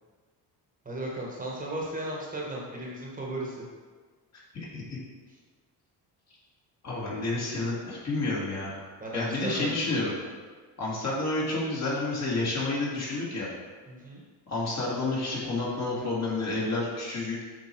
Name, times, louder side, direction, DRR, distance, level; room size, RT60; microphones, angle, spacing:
voice 1, 0.8-3.7 9.0-9.9 13.9-14.2, right 1 dB, 20° right, -3 dB, 1.4 m, -35 dB
voice 2, 4.5-5.0 6.8-8.8 9.1-10.1 10.8-13.5 14.5-17.4, left 2 dB, 45° left, -5 dB, 2.3 m, -30 dB
7.7 x 5.0 x 4.5 m, 1.5 s
cardioid pair, 140°, 38 cm